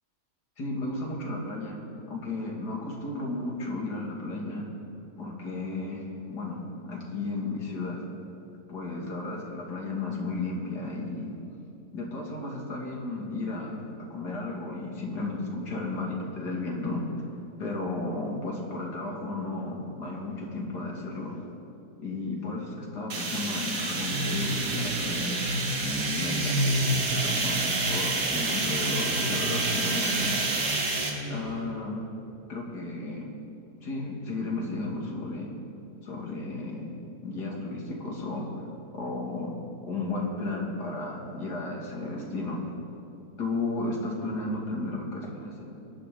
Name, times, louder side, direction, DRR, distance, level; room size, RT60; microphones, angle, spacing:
voice 1, 0.6-1.8 2.1-4.7 5.2-8.0 8.7-11.4 11.9-13.8 14.1-17.0 17.6-21.3 22.0-25.3 25.8-30.3 31.3-32.0 32.5-33.3 33.8-35.5 36.0-36.9 37.2-38.6 38.9-39.5 39.8-42.6 43.4-45.7, left 2 dB, 70° left, -2 dB, 3.0 m, -34 dB
sound 1, 23.1-31.1, right 3 dB, 70° right, 2.2 m, -29 dB
sound 2, 23.9-31.7, equal, 50° right, 1.8 m, -32 dB
24.0 x 11.5 x 3.9 m, 2.7 s
omnidirectional pair, 1.8 m